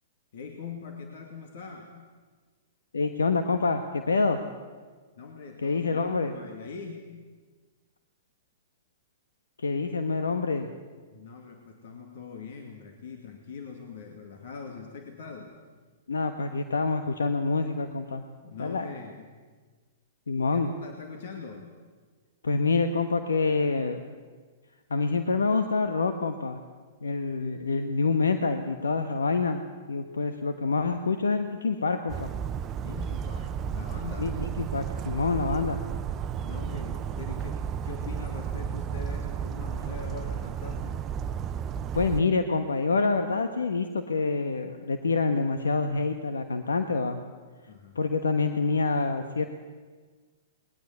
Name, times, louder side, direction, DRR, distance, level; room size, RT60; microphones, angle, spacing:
voice 1, 0.3-2.0 5.2-7.1 11.1-15.6 18.4-19.4 20.4-21.7 32.8-34.4 36.4-41.0 47.7-48.0, left 5 dB, 65° left, 3 dB, 2.5 m, -42 dB
voice 2, 2.9-4.4 5.6-6.3 9.6-10.7 16.1-18.2 18.6-18.9 20.3-20.7 22.4-24.0 24.9-26.6 27.0-29.6 29.9-32.3 34.2-35.8 41.9-47.2 47.9-49.4, left 4 dB, 90° left, 8 dB, 1.3 m, -26 dB
Bird vocalization bird call bird song, 32.1-42.2, right 8 dB, 25° right, 0.8 m, -33 dB
20.5 x 19.5 x 8.3 m, 1.5 s
hypercardioid pair, 120°, 0 cm